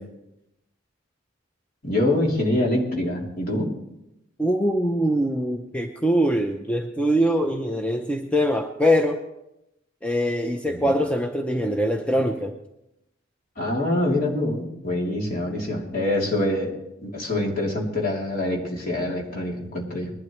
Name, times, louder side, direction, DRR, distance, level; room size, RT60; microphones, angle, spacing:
voice 1, 1.8-3.7 13.6-20.1, left 1 dB, 45° left, -2 dB, 3.1 m, -25 dB
voice 2, 4.4-9.2 10.0-12.5, equal, 5° left, 4 dB, 0.7 m, -23 dB
21.0 x 12.0 x 3.2 m, 0.87 s
head